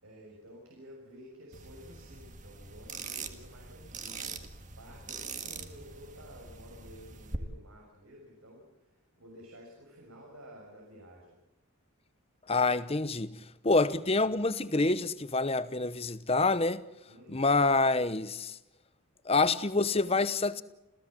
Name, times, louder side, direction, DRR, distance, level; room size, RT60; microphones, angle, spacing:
voice 1, 0.0-4.4 4.8-8.7 9.2-11.3 17.1-17.4, equal, 75° right, 6.4 m, -52 dB
sound 1, 1.5-7.4, right 5 dB, 35° right, 1.7 m, -43 dB
voice 2, 12.5-13.4 13.6-16.8 17.3-18.6 19.3-20.6, left 3 dB, 25° left, 0.9 m, -27 dB
28.0 x 16.5 x 7.7 m
head